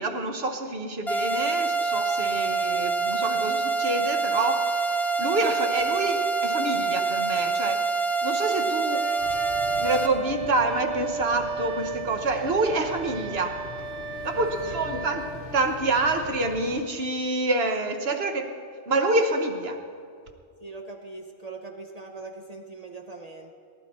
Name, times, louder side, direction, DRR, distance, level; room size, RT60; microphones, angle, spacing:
voice 1, 0.0-7.8 8.2-9.0 9.8-13.5 14.2-15.3 15.5-18.5 18.9-19.8, right 2 dB, 65° right, 5 dB, 1.3 m, -27 dB
sound 1, 1.1-10.1, right 4 dB, ahead, 0.6 m, -26 dB
Wind instrument woodwind instrument, 8.9-15.4, right 6 dB, 90° right, 1.6 m, -35 dB
sound 2, 9.2-16.8, left 5 dB, 75° left, 1.1 m, -43 dB
voice 2, 14.3-14.8 20.6-23.5, right 3 dB, 40° right, 2 dB, 0.9 m, -41 dB
19.5 x 11.0 x 4.3 m, 2.2 s
omnidirectional pair, 1.1 m